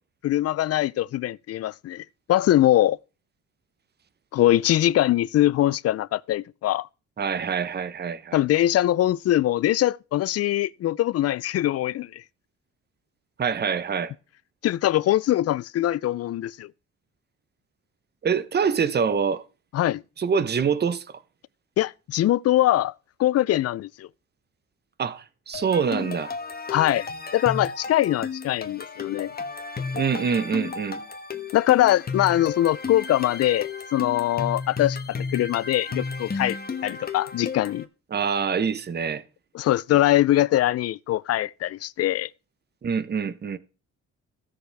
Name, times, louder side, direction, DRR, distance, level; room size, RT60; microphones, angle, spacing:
voice 1, 0.2-2.0 2.3-3.0 4.3-6.9 8.3-12.2 14.6-16.7 19.7-20.0 21.8-22.9 23.2-24.1 26.7-29.3 31.5-37.9 39.5-42.3, left 13 dB, 55° left, 0.4 m, -22 dB
voice 2, 7.2-8.4 13.4-14.1 18.2-19.4 20.2-21.0 25.0-26.3 29.9-31.0 38.1-39.2 42.8-43.6, right 6 dB, 35° right, 0.8 m, -25 dB
sound 1, 25.5-37.8, left 5 dB, 30° left, 1.3 m, -33 dB
15.5 x 6.3 x 3.4 m
cardioid pair, 90°, 30 cm